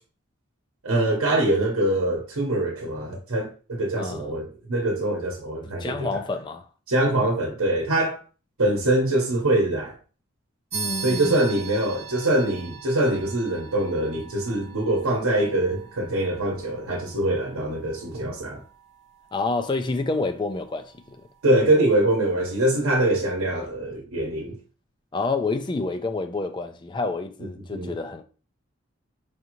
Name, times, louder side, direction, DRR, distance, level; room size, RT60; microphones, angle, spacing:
voice 1, 0.8-5.9 6.9-8.2 8.6-9.9 11.0-18.6 21.4-24.5 27.7-27.9, right 1 dB, 90° right, 0.9 m, -23 dB
voice 2, 4.0-4.3 5.6-6.7 10.7-11.4 19.3-21.3 25.1-28.2, left 3 dB, 20° left, 0.3 m, -28 dB
sound 1, 10.7-20.7, right 6 dB, 30° right, 1.0 m, -40 dB
4.9 x 2.7 x 2.9 m
head